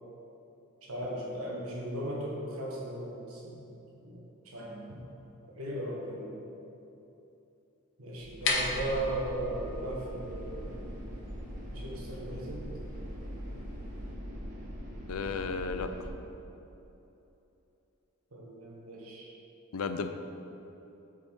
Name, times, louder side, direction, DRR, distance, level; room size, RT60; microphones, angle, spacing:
voice 1, 0.8-5.1 5.6-6.3 8.0-10.8 11.6-12.7 18.3-19.3, right 1 dB, 75° right, -3 dB, 1.5 m, -37 dB
sound 1, 8.2-14.1, left 3 dB, 55° left, 0.9 m, -38 dB
sound 2, 8.5-16.1, equal, 40° right, 1.1 m, -42 dB
voice 2, 15.1-15.9 19.7-20.1, left 5 dB, 80° left, 8 dB, 0.5 m, -33 dB
8.1 x 5.4 x 3.7 m, 3.0 s
head